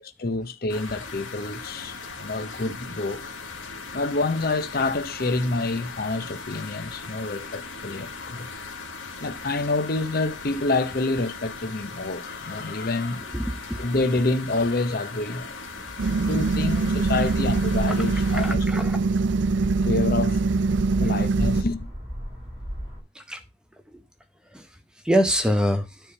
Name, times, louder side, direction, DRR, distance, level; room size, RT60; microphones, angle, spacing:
voice 1, 0.2-3.3 3.9-8.5 9.2-13.3 13.8-15.9 16.1-19.1 19.8-20.4 21.0-21.9, left 2 dB, 50° left, 0.8 m, -28 dB
sound 1, 0.7-18.6, left 4 dB, 90° left, 1.6 m, -39 dB
voice 2, 13.3-13.8 18.3-19.0 23.3-23.4 25.0-25.9, equal, 5° right, 0.7 m, -24 dB
sound 2, 16.0-21.6, right 3 dB, 70° right, 0.5 m, -23 dB
sound 3, 16.5-23.0, equal, 30° right, 6.6 m, -35 dB
9.8 x 3.6 x 6.8 m
head